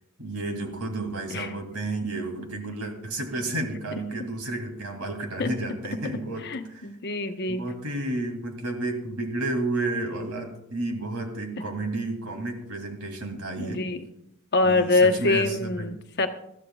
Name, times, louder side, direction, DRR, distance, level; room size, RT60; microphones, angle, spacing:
voice 1, 0.2-6.4 6.7-6.9 7.5-13.8 14.6-15.9, right 2 dB, 85° right, 3 dB, 2.7 m, -31 dB
voice 2, 6.4-7.6 13.6-14.1 14.5-16.3, left 3 dB, 50° left, 6 dB, 1.1 m, -24 dB
21.5 x 14.0 x 2.4 m, 0.80 s
head